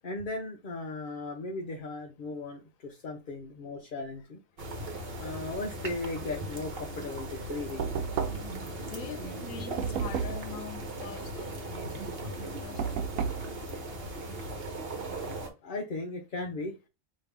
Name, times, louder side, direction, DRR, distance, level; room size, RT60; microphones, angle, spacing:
voice 1, 0.0-4.4 5.2-7.9 15.6-16.9, left 2 dB, 45° left, 0.8 m, -37 dB
sound 1, 4.6-15.5, right 1 dB, 45° right, 1.3 m, -38 dB
Knock, 7.8-8.7 9.8-10.5 12.8-13.5, right 7 dB, 80° right, 1.1 m, -32 dB
voice 2, 8.3-12.9, left 7 dB, 80° left, 1.1 m, -44 dB
5.3 x 2.8 x 3.4 m
omnidirectional pair, 1.4 m